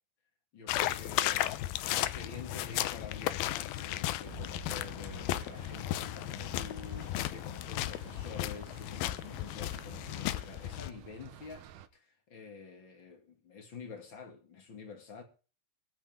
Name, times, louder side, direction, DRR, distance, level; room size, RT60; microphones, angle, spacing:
voice 1, 0.5-1.5 1.8-15.2, left 5 dB, 35° left, 2.2 m, -48 dB
sound 1, 0.7-10.9, left 14 dB, 85° left, 2.1 m, -35 dB
sound 2, 4.2-11.9, right 11 dB, 85° right, 1.8 m, -52 dB
24.0 x 8.5 x 3.7 m
omnidirectional pair, 5.3 m